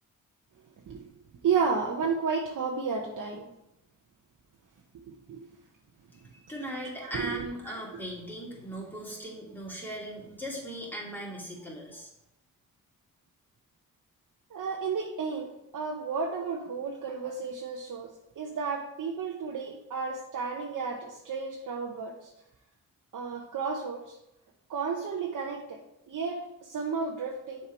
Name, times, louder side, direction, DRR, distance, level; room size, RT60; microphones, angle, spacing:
voice 1, 1.4-3.4 5.1-5.4 7.0-8.0 14.5-15.5 15.7-18.1 18.4-22.3 23.1-24.2 24.7-25.8 26.1-27.7, right 5 dB, 70° right, 0 dB, 0.9 m, -32 dB
voice 2, 6.3-12.1, equal, 5° left, -4 dB, 2.6 m, -38 dB
6.8 x 4.6 x 4.5 m, 0.86 s
cardioid pair, 70°, 32 cm